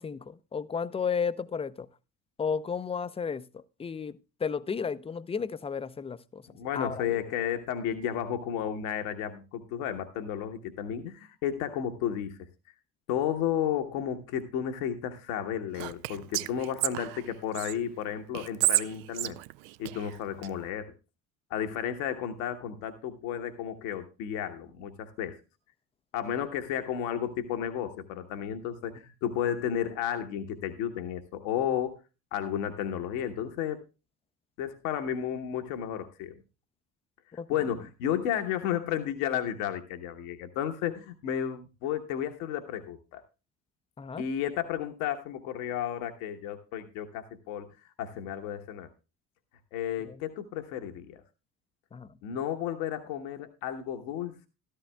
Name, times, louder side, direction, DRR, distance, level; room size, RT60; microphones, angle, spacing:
voice 1, 0.0-1.9 2.4-6.4 6.8-7.2 37.4-37.5 44.0-44.2 50.0-50.2 51.9-52.1, left 6 dB, 15° left, 0.5 m, -33 dB
voice 2, 6.5-12.4 13.1-19.4 19.8-20.9 21.5-25.4 26.1-32.0 32.3-33.8 34.6-36.4 37.5-43.2 44.2-47.7 48.0-48.9 49.7-51.2 52.2-54.5, left 9 dB, 65° left, 1.1 m, -32 dB
Whispering, 15.7-17.7 18.3-20.5, right 17 dB, 65° right, 0.5 m, -31 dB
13.5 x 13.5 x 2.2 m
figure-of-eight pair, 55°, 43 cm